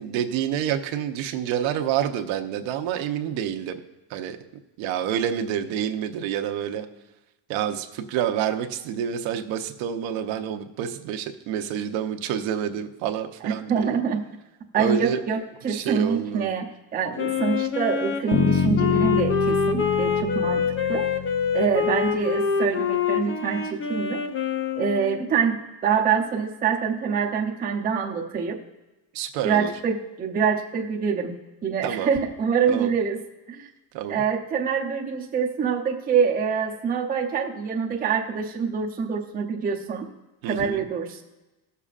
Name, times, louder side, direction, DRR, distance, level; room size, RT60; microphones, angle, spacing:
voice 1, 0.0-3.8 4.1-4.4 4.8-6.9 7.5-14.0 14.8-15.2 15.7-16.5 29.1-29.7 31.8-32.1 32.7-32.9 33.9-34.2 40.4-40.8, right 9 dB, 75° right, 5 dB, 0.9 m, -28 dB
voice 2, 13.4-14.3 14.7-20.6 20.9-21.1 21.5-24.2 24.8-28.6 29.4-33.2 33.5-33.7 34.1-40.1 40.5-41.2, right 6 dB, 20° right, -1 dB, 0.7 m, -25 dB
Wind instrument woodwind instrument, 17.2-25.3, left 6 dB, 25° left, 0.5 m, -26 dB
Bass guitar, 18.3-22.2, left 6 dB, 55° left, 0.9 m, -26 dB
18.0 x 6.9 x 2.5 m, 1.0 s
cardioid pair, 175°, 47 cm